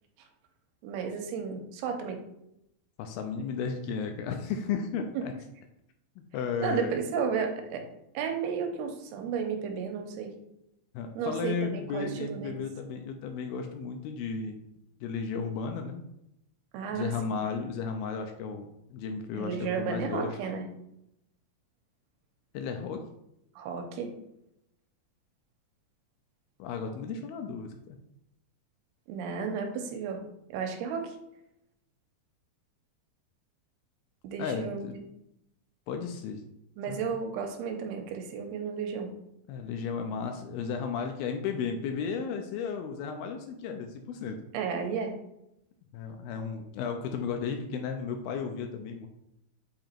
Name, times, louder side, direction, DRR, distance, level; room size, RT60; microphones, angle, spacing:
voice 1, 0.8-2.2 5.2-5.3 6.6-7.9 8.1-10.3 11.2-12.6 16.7-17.1 19.3-20.7 23.6-24.1 29.1-30.2 30.5-31.2 34.2-35.0 36.8-39.1 44.5-45.2, right 6 dB, 85° right, 4 dB, 2.7 m, -33 dB
voice 2, 3.0-5.3 6.2-7.0 10.9-14.6 15.0-16.0 16.9-20.4 22.5-23.0 26.6-28.0 34.4-34.9 35.9-36.4 36.9-37.0 39.5-44.4 45.9-49.1, left 6 dB, 80° left, 5 dB, 2.2 m, -34 dB
7.6 x 2.9 x 4.4 m, 0.81 s
omnidirectional pair, 4.6 m